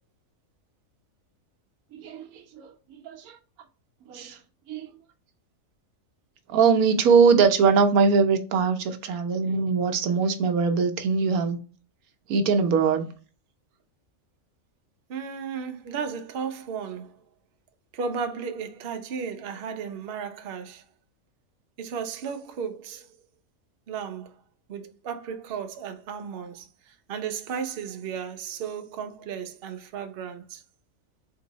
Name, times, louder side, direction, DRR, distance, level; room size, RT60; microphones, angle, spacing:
voice 1, 1.9-2.7 3.0-3.4 4.1-4.4 4.7-4.9 6.5-11.6 12.3-13.1, right 5 dB, 90° right, 1.2 m, -22 dB
voice 2, 15.1-17.2 17.9-20.8 21.8-23.1 23.9-24.4 24.7-30.6, right 6 dB, 55° right, 0.7 m, -34 dB
3.9 x 2.6 x 3.9 m
omnidirectional pair, 1.5 m